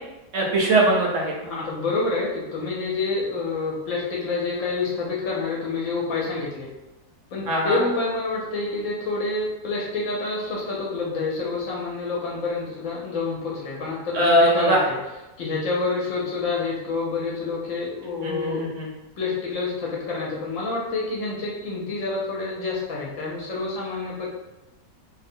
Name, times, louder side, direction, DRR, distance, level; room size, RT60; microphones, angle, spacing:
voice 1, 0.3-1.3 7.5-7.8 14.1-14.8 18.2-18.9, right 1 dB, 65° right, -2 dB, 0.8 m, -20 dB
voice 2, 1.4-6.7 7.3-15.0 15.4-18.6 19.2-24.3, left 3 dB, 70° left, -3 dB, 0.9 m, -28 dB
2.6 x 2.0 x 2.6 m, 1.0 s
omnidirectional pair, 1.6 m